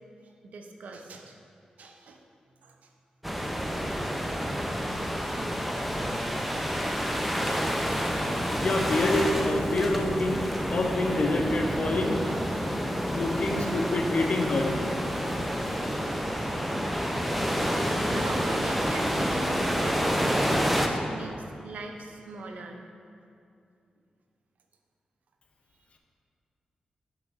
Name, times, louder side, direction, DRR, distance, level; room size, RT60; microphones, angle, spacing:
voice 1, 0.2-1.4 1.8-2.2 2.6-2.9 18.1-22.8, right 3 dB, 80° right, 3 dB, 0.6 m, -41 dB
sound 1, 3.2-20.9, equal, 5° right, 0.5 m, -28 dB
voice 2, 8.6-10.4 10.7-12.3 13.1-14.7, left 2 dB, 55° left, 2 dB, 0.7 m, -27 dB
5.8 x 5.7 x 4.0 m, 2.4 s
cardioid pair, 80°, 2 cm